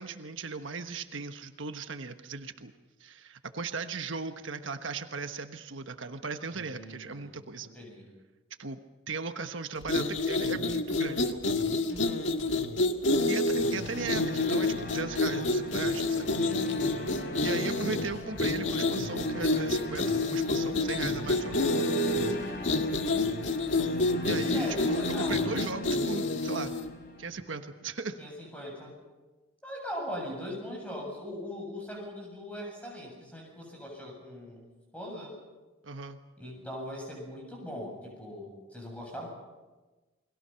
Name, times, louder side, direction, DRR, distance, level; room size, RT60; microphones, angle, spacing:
voice 1, 0.0-2.7 3.0-7.7 8.6-8.8 9.1-11.7 13.3-16.3 17.4-21.6 24.2-26.7 27.2-28.2 35.8-36.2, right 4 dB, 85° right, 7 dB, 1.3 m, -37 dB
voice 2, 6.5-8.1 11.9-12.6 16.4-16.9 24.5-25.5 28.2-28.9 29.6-34.6 34.9-35.3 36.4-39.3, equal, 5° left, -1 dB, 7.5 m, -41 dB
sound 1, 9.8-26.9, left 2 dB, 75° left, 1.7 m, -28 dB
sound 2, 13.5-27.6, equal, 55° left, 3.4 m, -39 dB
29.5 x 21.5 x 5.8 m, 1.2 s
head